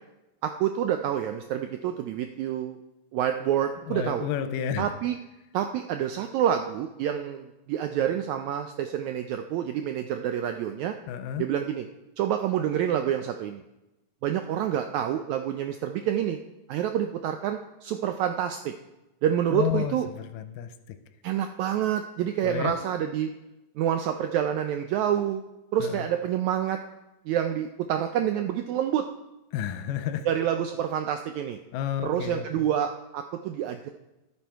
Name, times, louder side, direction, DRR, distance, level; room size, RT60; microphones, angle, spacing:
voice 1, 0.4-2.8 3.1-4.2 4.8-5.2 5.5-10.9 11.4-11.9 12.2-13.6 14.2-16.4 16.7-18.7 19.2-20.1 21.2-23.3 23.8-25.4 25.7-26.8 27.3-29.1 30.2-31.6 32.0-33.9, right 10 dB, 85° right, 7 dB, 1.6 m, -27 dB
voice 2, 3.9-4.9 11.1-11.5 19.5-21.0 22.4-22.8 25.8-26.0 29.5-30.3 31.7-32.6, left 9 dB, 90° left, 9 dB, 2.3 m, -31 dB
11.5 x 8.8 x 4.6 m, 0.99 s
omnidirectional pair, 3.8 m